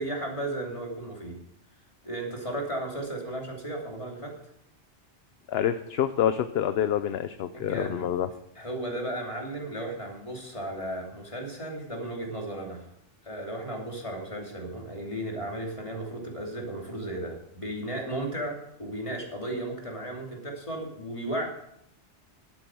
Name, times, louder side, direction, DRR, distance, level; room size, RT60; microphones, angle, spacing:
voice 1, 0.0-1.4 2.0-4.3 7.5-8.1 8.5-12.9 13.2-21.5, right 1 dB, 25° left, 0 dB, 2.9 m, -35 dB
voice 2, 5.5-8.3, left 9 dB, 65° left, 11 dB, 0.8 m, -27 dB
11.5 x 9.1 x 6.2 m, 0.75 s
omnidirectional pair, 1.2 m